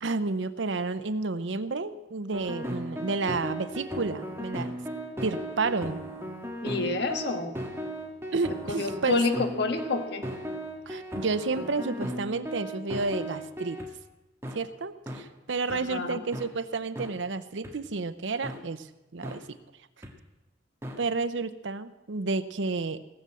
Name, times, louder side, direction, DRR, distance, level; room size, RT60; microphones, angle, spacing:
voice 1, 0.0-4.7 5.2-6.0 8.3-9.2 10.9-13.8 14.5-18.9 19.1-19.4 21.0-23.0, right 3 dB, 80° right, 12 dB, 0.7 m, -31 dB
sound 1, 2.3-13.9 14.4-14.6 15.1-15.2 15.7-15.8 16.3-16.5 17.0-17.1 17.6-17.7 18.4-18.6 19.2-19.4 20.0-20.1 20.8-21.0, equal, 15° right, 1.6 m, -36 dB
voice 2, 6.6-7.6 8.7-10.2 15.7-16.2, left 3 dB, 60° left, 7 dB, 1.4 m, -29 dB
17.5 x 6.9 x 7.6 m, 1.0 s
head